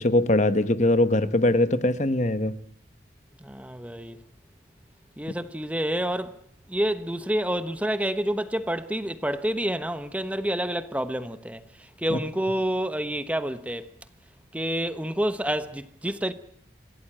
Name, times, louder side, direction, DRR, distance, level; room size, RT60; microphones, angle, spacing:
voice 1, 0.0-2.6 12.1-12.2, left 1 dB, 40° left, 1.1 m, -22 dB
voice 2, 3.4-4.2 5.2-6.4 6.7-13.9 14.5-16.3, right 1 dB, 5° right, 1.0 m, -28 dB
26.5 x 16.5 x 8.9 m
head